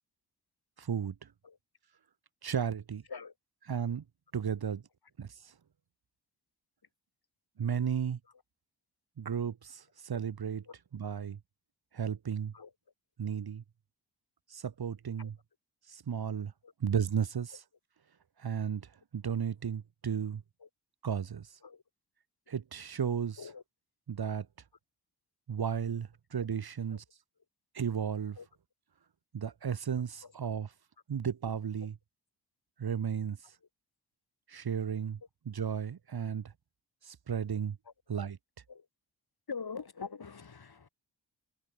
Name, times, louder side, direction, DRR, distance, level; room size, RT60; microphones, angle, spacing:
voice 1, 0.8-1.1 2.4-3.0 3.7-4.0 4.3-4.8 5.2-5.3 7.6-8.2 9.2-10.6 10.9-11.4 11.9-12.5 13.2-13.6 14.5-15.3 15.9-16.5 16.8-17.5 18.4-20.4 21.0-21.5 22.5-23.4 24.1-24.5 25.5-27.0 27.7-28.4 29.3-30.7 31.1-31.9 32.8-33.4 34.5-35.2 35.5-36.5 37.0-37.8 38.1-38.4, right 7 dB, 55° right, 1.3 m, -34 dB
voice 2, 30.0-30.6 31.8-31.9 36.2-36.3 37.8-37.9 38.7-38.9 39.5-40.9, left 5 dB, 50° left, 3.3 m, -44 dB
supercardioid pair, 40°, 46 cm